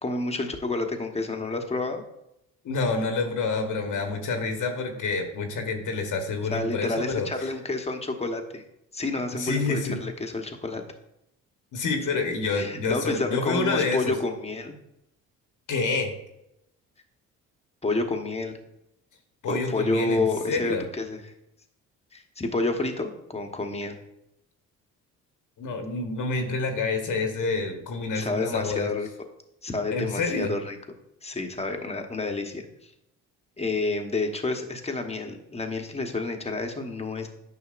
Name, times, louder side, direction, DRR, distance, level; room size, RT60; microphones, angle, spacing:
voice 1, 0.0-2.0 6.5-8.6 8.9-10.8 12.5-14.7 17.8-18.6 19.5-21.3 22.1-24.0 28.1-29.1 29.6-30.8 31.2-32.9 33.6-37.3, left 2 dB, 15° left, 4 dB, 1.1 m, -29 dB
voice 2, 2.6-7.3 9.3-10.0 11.7-14.1 15.7-16.1 19.4-20.9 25.6-28.9 29.9-30.6, left 3 dB, 55° left, 4 dB, 1.2 m, -28 dB
9.4 x 5.8 x 2.5 m, 0.83 s
hypercardioid pair, 60°, 37 cm